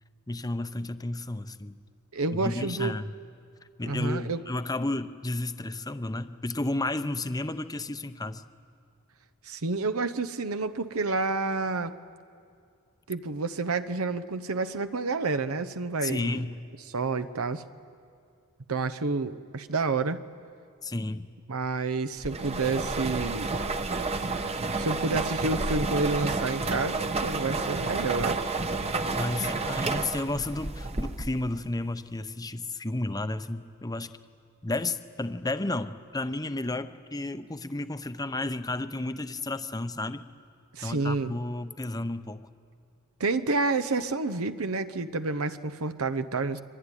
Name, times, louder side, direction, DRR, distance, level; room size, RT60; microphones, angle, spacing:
voice 1, 0.3-1.8 2.3-3.1 3.8-8.4 16.0-16.6 20.8-21.3 29.1-34.1 34.6-40.2 40.8-42.4, left 2 dB, 15° left, 10 dB, 0.8 m, -32 dB
voice 2, 2.1-3.0 3.9-4.4 9.4-11.9 13.1-16.4 16.9-17.6 18.7-20.2 21.5-23.5 24.8-28.5 40.7-41.4 43.2-46.6, right 3 dB, 80° right, 10 dB, 0.9 m, -29 dB
sound 1, 22.2-31.5, right 3 dB, 30° right, 1.0 m, -30 dB
24.5 x 24.5 x 9.9 m, 2.3 s
head